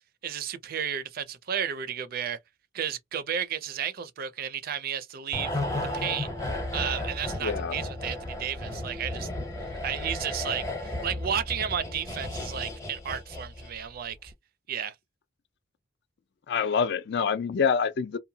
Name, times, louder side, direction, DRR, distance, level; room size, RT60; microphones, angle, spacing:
voice 1, 0.2-2.4 2.7-5.5 5.9-6.3 6.7-9.3 9.7-14.3 14.7-14.9, right 8 dB, 50° right, 0.4 m, -33 dB
sound 1, 5.3-13.9 14.1-14.3, left 1 dB, 15° left, 0.7 m, -34 dB
voice 2, 7.4-7.8 16.5-18.2, left 6 dB, 55° left, 0.4 m, -26 dB
2.8 x 2.1 x 2.6 m
head